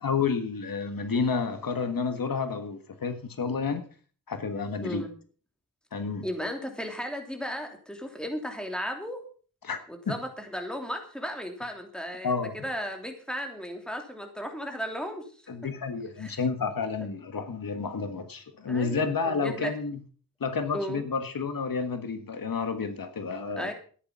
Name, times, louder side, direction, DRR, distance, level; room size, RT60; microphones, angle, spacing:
voice 1, 0.0-3.8 4.3-5.0 5.9-6.2 9.6-9.8 10.0-10.1 12.2-12.5 15.5-20.0 20.4-23.7, left 5 dB, 80° left, 9 dB, 1.6 m, -30 dB
voice 2, 6.2-9.2 9.9-15.3 16.2-16.4 18.7-19.7 20.7-21.1 23.6-23.7, equal, ahead, 4 dB, 3.1 m, -35 dB
13.5 x 10.5 x 5.5 m, 0.42 s
wide cardioid pair, 95°, 34 cm